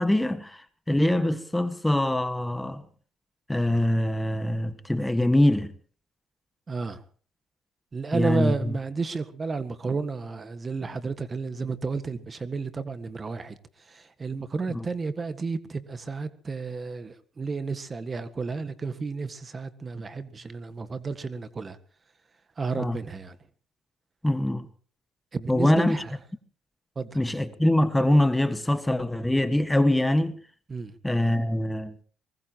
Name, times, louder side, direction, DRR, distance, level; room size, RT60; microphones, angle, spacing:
voice 1, 0.0-2.8 3.5-5.7 8.1-8.8 14.7-14.8 22.8-23.0 24.2-24.7 25.5-26.0 27.1-30.4 31.0-32.0, left 1 dB, 10° left, 1.6 m, -23 dB
voice 2, 6.7-7.0 7.9-13.5 13.9-21.8 22.6-23.4 25.3-26.1 26.9-27.2 30.7-30.9, right 4 dB, 35° right, 1.7 m, -32 dB
23.0 x 20.5 x 3.0 m
cardioid pair, 85°, 0 cm